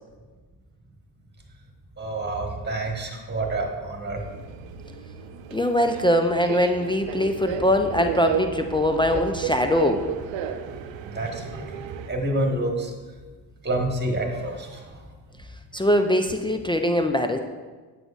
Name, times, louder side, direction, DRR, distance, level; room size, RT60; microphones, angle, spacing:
voice 1, 2.0-4.2 11.0-11.8 12.1-12.9 13.6-15.0, right 1 dB, 20° right, 2 dB, 1.3 m, -28 dB
Subway metro underground, 4.2-12.1, right 8 dB, 65° right, 0.6 m, -34 dB
voice 2, 5.5-10.0 15.7-17.4, left 1 dB, 10° left, 5 dB, 0.3 m, -22 dB
7.7 x 6.3 x 2.4 m, 1.4 s
hypercardioid pair, 45°, 49 cm